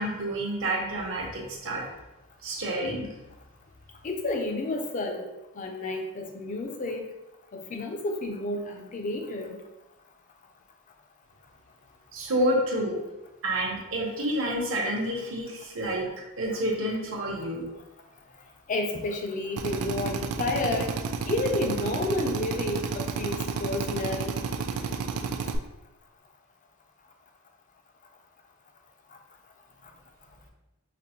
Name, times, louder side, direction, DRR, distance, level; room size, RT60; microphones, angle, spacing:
voice 1, 0.0-1.8 2.4-3.1 12.1-13.0 13.4-16.1 16.4-17.7, right 1 dB, 60° right, -2 dB, 0.8 m, -29 dB
voice 2, 4.0-5.2 5.6-7.0 7.5-9.6 18.7-20.9 21.2-24.3, left 2 dB, 35° left, 3 dB, 0.4 m, -30 dB
Drill, 19.6-25.6, right 5 dB, 85° right, 0.3 m, -31 dB
5.0 x 2.0 x 2.8 m, 0.97 s
head